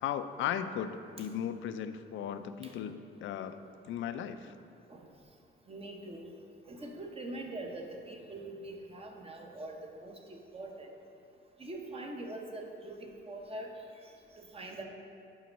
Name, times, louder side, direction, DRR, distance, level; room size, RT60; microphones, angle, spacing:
voice 1, 0.0-3.6 3.8-4.5, left 9 dB, 75° left, 11 dB, 0.4 m, -36 dB
voice 2, 5.7-6.3 6.7-10.2 10.5-10.9 11.6-13.8 14.4-14.8, right 2 dB, 30° right, 2 dB, 0.9 m, -43 dB
5.6 x 4.4 x 5.1 m, 2.7 s
cardioid pair, 90°, 20 cm